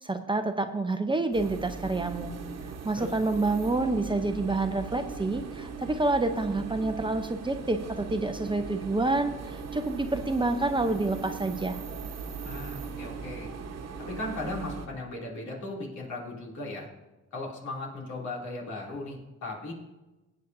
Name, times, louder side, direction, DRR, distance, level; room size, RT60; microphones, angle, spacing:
voice 1, 0.0-2.3 2.8-11.8, right 2 dB, 15° right, 7 dB, 0.7 m, -28 dB
sound 1, 1.3-14.9, right 5 dB, 60° right, 1.3 m, -39 dB
voice 2, 12.4-13.5 14.1-16.9 17.3-19.7, left 2 dB, 70° left, -2 dB, 3.1 m, -37 dB
18.5 x 8.4 x 2.7 m, 1.1 s
cardioid pair, 90°, 30 cm